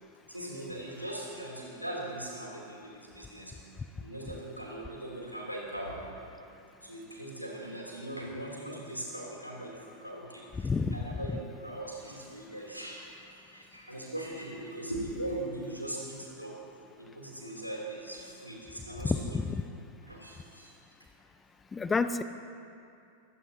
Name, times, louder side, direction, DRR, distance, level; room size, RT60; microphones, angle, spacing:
voice 1, 0.3-3.6 4.0-6.0 6.5-16.6 17.0-19.4 20.0-20.7, right 1 dB, 90° right, -3 dB, 3.2 m, -40 dB
voice 2, 10.6-11.0 19.0-19.6 21.7-22.2, left 4 dB, 15° left, 12 dB, 0.6 m, -29 dB
23.5 x 17.0 x 2.9 m, 2.6 s
figure-of-eight pair, 90°, 0 cm